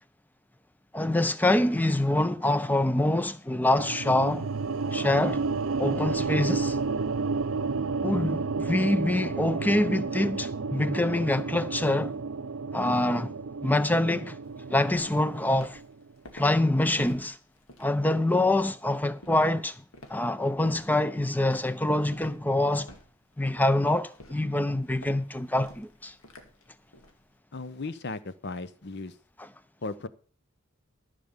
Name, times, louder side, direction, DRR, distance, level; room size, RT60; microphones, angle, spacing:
voice 1, 0.9-4.5 4.9-5.4 5.8-6.8 8.0-12.1 12.7-13.3 13.6-14.4 14.7-15.8 16.3-17.4 17.8-19.8 20.1-22.9 23.4-26.1, left 1 dB, 10° left, 0.6 m, -25 dB
sound 1, 3.8-16.0, right 4 dB, 65° right, 0.5 m, -31 dB
Walk footsteps, 14.4-27.2, left 1 dB, 75° left, 2.1 m, -51 dB
voice 2, 27.5-29.1 29.8-30.1, left 3 dB, 50° left, 0.8 m, -36 dB
14.5 x 5.2 x 7.3 m
head